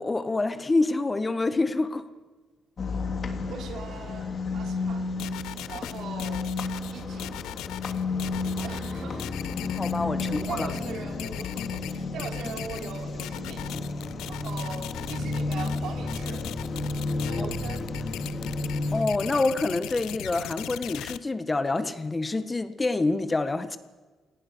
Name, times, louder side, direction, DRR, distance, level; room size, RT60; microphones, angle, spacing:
voice 1, 0.0-2.0 8.6-8.7 9.0-9.2 9.7-10.7 17.4-17.5 18.9-23.8, left 2 dB, 20° left, 11 dB, 1.6 m, -27 dB
sound 1, 2.8-19.0, left 3 dB, 45° left, 3.1 m, -32 dB
voice 2, 3.5-5.1 5.7-6.5 6.9-7.3 8.6-9.3 10.2-13.7 14.2-16.5 17.2-17.8, right 6 dB, 75° right, 4 dB, 3.6 m, -40 dB
sound 2, 5.2-21.2, left 14 dB, 90° left, 0.7 m, -39 dB
28.0 x 19.0 x 6.4 m, 1.3 s
cardioid pair, 90°, 0 cm